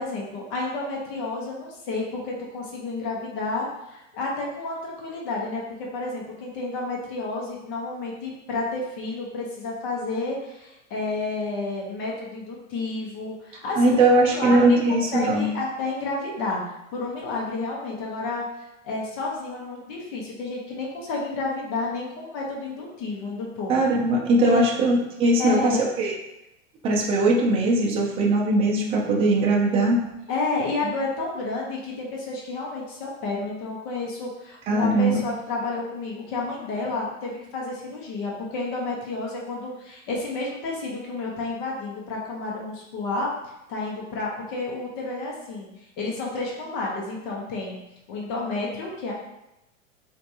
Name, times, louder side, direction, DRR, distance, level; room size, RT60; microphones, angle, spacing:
voice 1, 0.0-14.6 14.9-16.6 16.9-18.5 18.8-23.7 24.4-24.6 25.4-25.9 30.3-43.3 43.7-47.8 48.1-49.1, left 3 dB, 45° left, -2 dB, 1.0 m, -30 dB
voice 2, 13.8-15.5 23.7-26.1 26.8-30.0 34.7-35.2, right 2 dB, 15° right, -2 dB, 0.4 m, -20 dB
4.3 x 2.6 x 2.8 m, 0.90 s
supercardioid pair, 135°, 38 cm